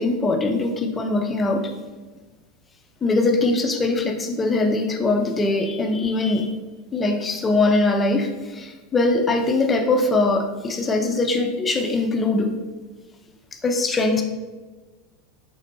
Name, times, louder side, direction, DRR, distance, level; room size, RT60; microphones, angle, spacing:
voice 1, 0.0-1.7 3.0-6.5 6.9-12.5 13.6-14.2, left 2 dB, 20° left, 4 dB, 0.5 m, -21 dB
5.1 x 3.3 x 2.6 m, 1.3 s
figure-of-eight pair, 80°, 0 cm